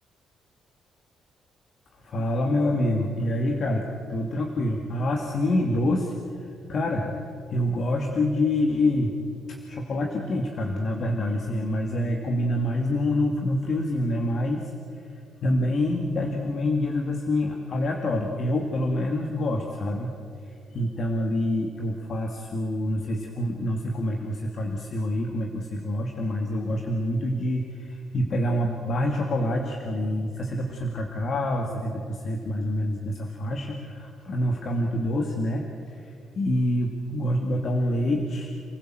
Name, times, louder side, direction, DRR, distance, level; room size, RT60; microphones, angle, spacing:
voice 1, 1.9-7.2 7.5-9.1 9.5-20.1 20.4-38.5, left 1 dB, 55° left, 2 dB, 2.3 m, -27 dB
28.5 x 15.5 x 7.8 m, 2.3 s
cardioid pair, 90°, 0 cm